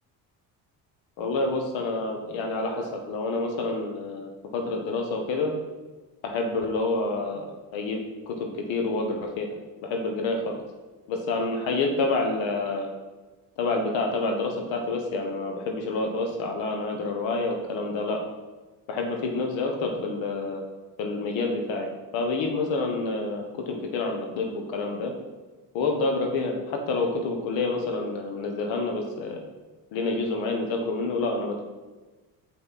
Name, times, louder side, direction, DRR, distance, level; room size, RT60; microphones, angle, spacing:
voice 1, 1.2-5.5 6.2-7.5 7.7-8.0 8.3-9.5 9.8-10.6 11.1-12.9 13.6-18.2 18.9-20.6 21.0-25.1 25.7-29.4 29.9-31.6, left 3 dB, 70° left, 3 dB, 1.3 m, -28 dB
6.6 x 5.6 x 4.1 m, 1.2 s
supercardioid pair, 70°, 47 cm